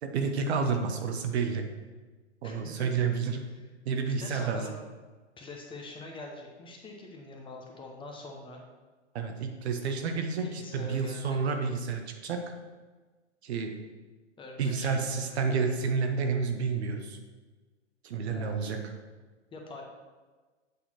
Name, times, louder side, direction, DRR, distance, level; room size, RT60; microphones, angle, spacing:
voice 1, 0.0-1.6 2.4-3.4 3.8-4.7 9.1-12.4 13.4-13.7 14.6-17.2 18.0-18.8, right 5 dB, 65° right, 5 dB, 1.1 m, -30 dB
voice 2, 2.4-3.1 3.5-3.6 4.2-4.8 5.4-8.6 10.4-11.5 14.4-15.4 18.3-18.7 19.5-19.8, left 2 dB, 15° left, 0 dB, 0.9 m, -44 dB
8.3 x 4.2 x 4.3 m, 1.3 s
hypercardioid pair, 115°, 35 cm